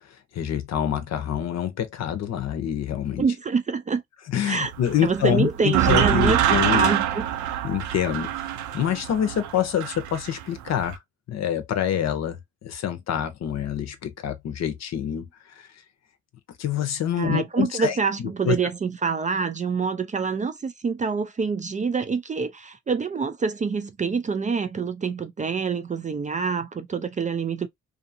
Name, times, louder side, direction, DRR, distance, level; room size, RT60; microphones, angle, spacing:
voice 1, 0.3-3.2 4.3-6.9 7.6-8.3 8.7-11.0 11.3-15.3 15.6-15.7 16.6-18.5, left 9 dB, 60° left, 0.7 m, -26 dB
voice 2, 3.2-4.0 4.4-4.7 5.0-7.3 17.2-27.7, right 5 dB, 25° right, 0.4 m, -26 dB
sound 1, 4.7-11.0, right 11 dB, 75° right, 0.5 m, -25 dB
2.5 x 2.5 x 2.6 m
cardioid pair, 90°, 30 cm